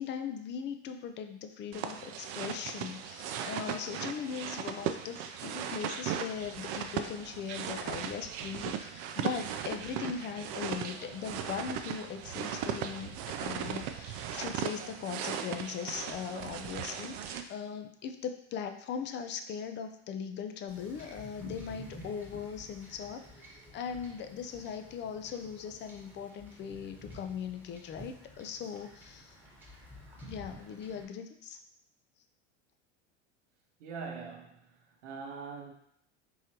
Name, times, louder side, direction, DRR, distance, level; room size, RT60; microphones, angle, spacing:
voice 1, 0.0-29.4 30.3-31.6, left 7 dB, 30° left, 7 dB, 0.4 m, -39 dB
sound 1, 1.7-17.4, right 8 dB, 55° right, 0.5 m, -38 dB
Wind / Ocean / Boat Water vehicle, 20.7-31.0, equal, 5° right, 1.2 m, -51 dB
voice 2, 33.8-35.7, right 5 dB, 80° right, 2 dB, 0.8 m, -43 dB
3.8 x 3.1 x 2.9 m, 0.72 s
hypercardioid pair, 85°, 36 cm